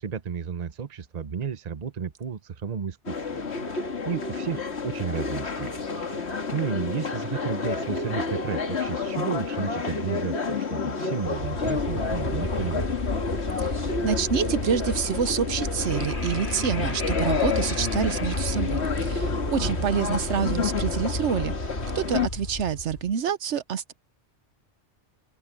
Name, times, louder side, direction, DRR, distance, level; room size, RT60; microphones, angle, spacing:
voice 1, 0.0-5.8 6.1-13.0 19.6-19.9, right 7 dB, 40° right, 0.9 m, -33 dB
sound 1, 3.1-22.3, left 5 dB, 65° left, 1.9 m, -30 dB
sound 2, 11.2-23.1, left 1 dB, 45° left, 3.3 m, -32 dB
voice 2, 13.6-21.7 21.9-23.9, right 8 dB, 75° right, 1.1 m, -27 dB
open air
omnidirectional pair, 1.2 m